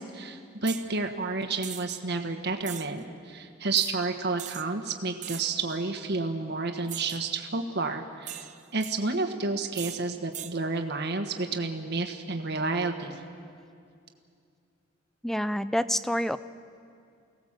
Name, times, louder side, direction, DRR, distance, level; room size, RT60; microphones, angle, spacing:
voice 1, 0.0-8.5 8.7-13.2, right 3 dB, 60° right, 5 dB, 1.4 m, -30 dB
sound 1, 0.7-0.9 1.6-2.0 2.6-2.9 3.8-4.0 4.4-4.6 5.2-5.6 6.9-7.3 8.3-8.9 9.7-10.0 10.3-10.5, right 11 dB, 40° right, 0.7 m, -39 dB
voice 2, 15.2-16.4, equal, ahead, 14 dB, 0.5 m, -27 dB
25.0 x 18.0 x 7.5 m, 2.4 s
head